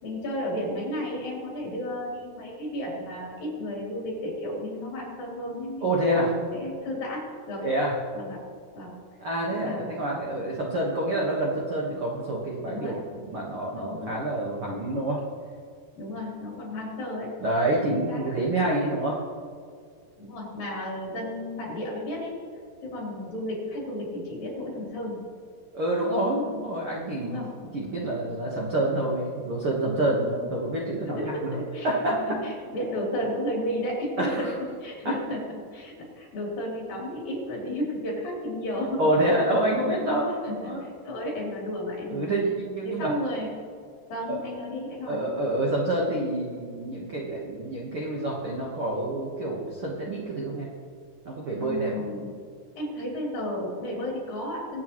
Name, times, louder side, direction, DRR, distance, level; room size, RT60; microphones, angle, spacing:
voice 1, 0.0-7.7 8.1-8.4 8.7-8.9 9.6-9.9 12.7-13.0 13.7-14.2 16.0-17.3 17.9-18.3 20.2-22.3 22.8-25.2 27.2-27.5 31.2-34.5 34.8-35.4 35.7-39.1 39.5-40.2 40.4-42.4 42.8-43.5 44.1-45.3 51.6-52.3 52.8-54.8, left 1 dB, 55° left, -4 dB, 5.1 m, -33 dB
voice 2, 5.8-6.3 7.6-7.9 9.2-15.2 17.4-19.2 25.7-27.4 27.7-31.6 31.8-32.2 34.2-34.5 39.0-40.8 42.1-43.1 44.3-44.4 45.1-50.7 51.2-51.9, right 1 dB, 85° right, -3 dB, 1.2 m, -27 dB
23.0 x 8.4 x 3.1 m, 2.1 s
omnidirectional pair, 4.9 m